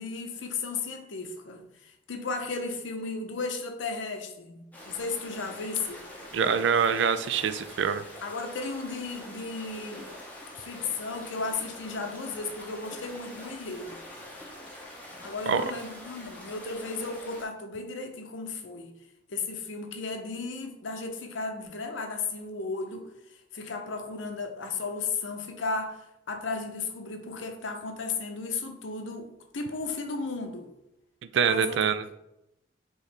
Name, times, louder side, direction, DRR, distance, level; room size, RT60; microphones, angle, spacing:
voice 1, 0.0-6.0 8.2-10.0 10.5-14.0 15.2-18.9 19.3-29.3 29.5-30.7 31.4-31.8, left 4 dB, 90° left, 5 dB, 0.7 m, -35 dB
sound 1, 4.7-17.5, left 1 dB, 10° left, 0.7 m, -45 dB
voice 2, 6.3-8.0 15.5-15.6 31.3-32.0, right 7 dB, 70° right, 11 dB, 0.3 m, -25 dB
4.6 x 3.1 x 3.2 m, 0.86 s
head